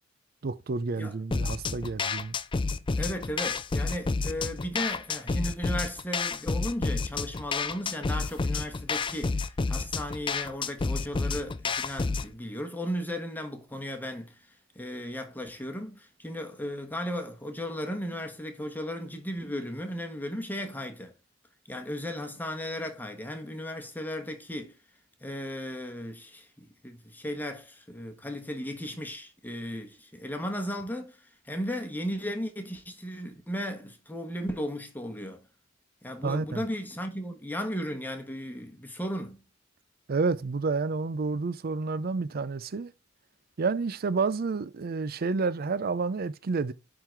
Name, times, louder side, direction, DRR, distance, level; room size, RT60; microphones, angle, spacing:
voice 1, 0.4-2.4 36.2-36.6 40.1-42.9 43.6-46.7, right 4 dB, 50° right, 0.5 m, -29 dB
sound 1, 1.3-12.3, left 4 dB, 25° left, 0.4 m, -30 dB
voice 2, 3.0-9.4 9.7-14.4 14.7-21.1 21.7-24.7 25.2-31.2 31.4-35.4 36.0-39.4, equal, 10° left, 1.2 m, -35 dB
10.0 x 3.8 x 4.5 m
head